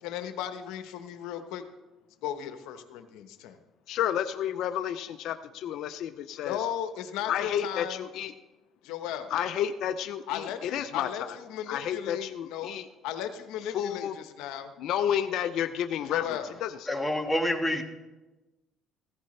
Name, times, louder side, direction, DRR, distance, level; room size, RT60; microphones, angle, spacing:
voice 1, 0.0-1.6 2.2-3.6 6.4-8.1 8.8-9.3 10.3-12.7 13.0-14.7 16.1-16.5, left 10 dB, 85° left, 8 dB, 1.1 m, -36 dB
voice 2, 3.9-6.6 7.3-8.3 9.3-11.4 11.7-12.9 13.7-14.1 14.8-16.7, left 10 dB, 70° left, 8 dB, 0.5 m, -31 dB
voice 3, 16.9-17.8, left 1 dB, 10° left, 3 dB, 1.5 m, -27 dB
15.5 x 14.5 x 3.3 m, 1.1 s
cardioid pair, 100°, 0 cm